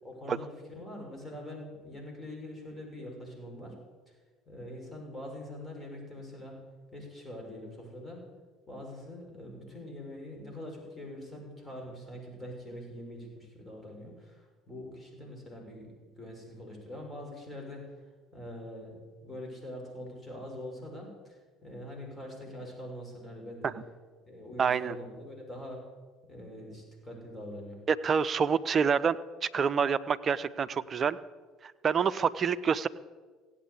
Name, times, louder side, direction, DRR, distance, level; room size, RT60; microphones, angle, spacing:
voice 1, 0.0-3.8 4.1-4.2 4.5-6.6 6.9-8.2 8.7-18.0 18.3-23.7 24.3-25.8 26.3-27.8, left 1 dB, 25° left, 0 dB, 6.1 m, -44 dB
voice 2, 24.6-24.9 27.9-29.2 29.4-31.2 31.6-32.9, right 6 dB, 40° right, 12 dB, 0.6 m, -27 dB
16.5 x 8.8 x 8.3 m, 1.4 s
hypercardioid pair, 60°, 0 cm